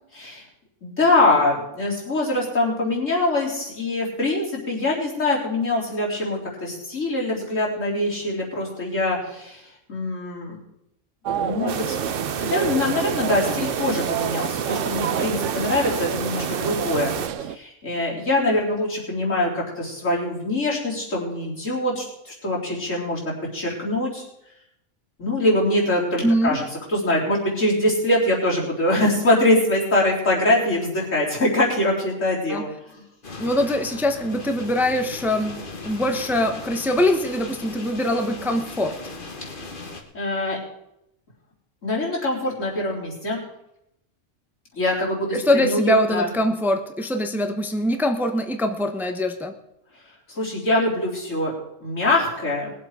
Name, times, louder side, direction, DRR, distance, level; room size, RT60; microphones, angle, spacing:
voice 1, 0.1-0.4 0.8-10.6 11.3-12.0 12.4-17.1 17.4-24.3 25.2-26.6 26.9-33.0 40.1-40.6 41.8-43.4 44.7-46.3 50.3-51.5 51.8-52.7, left 1 dB, 90° left, -4 dB, 4.2 m, -23 dB
sound 1, 11.3-17.6, right 9 dB, 75° right, 1.0 m, -29 dB
sound 2, 11.7-17.3, right 7 dB, 55° right, 0.9 m, -29 dB
voice 2, 26.2-26.6 32.5-32.7 33.4-39.0 45.3-49.5, left 1 dB, ahead, 6 dB, 0.9 m, -23 dB
sound 3, 33.2-40.0, left 3 dB, 45° left, 1.7 m, -37 dB
20.5 x 7.7 x 4.9 m, 0.81 s
omnidirectional pair, 1.3 m